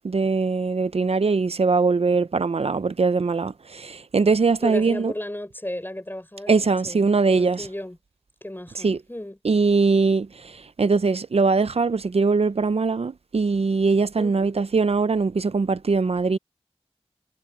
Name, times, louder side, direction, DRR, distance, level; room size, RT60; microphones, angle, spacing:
voice 1, 0.0-5.1 6.5-7.7 8.8-9.0 9.4-16.4, right 4 dB, 70° right, 0.6 m, -21 dB
voice 2, 4.6-8.0 8.4-9.4 14.2-14.5, left 1 dB, 20° left, 5.9 m, -34 dB
wide cardioid pair, 45°, 11 cm